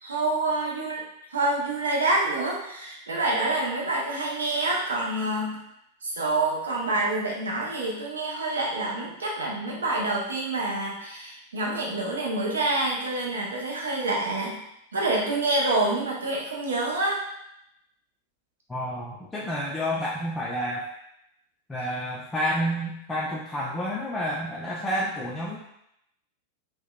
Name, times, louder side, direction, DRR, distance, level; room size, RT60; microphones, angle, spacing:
voice 1, 0.0-1.0 1.3-5.6 6.0-14.6 14.9-17.2, right 2 dB, 70° right, -2 dB, 0.5 m, -27 dB
voice 2, 18.7-20.9 21.7-25.6, equal, 10° left, -6 dB, 0.3 m, -29 dB
2.6 x 2.1 x 2.2 m, 0.79 s
figure-of-eight pair, 90°, 0 cm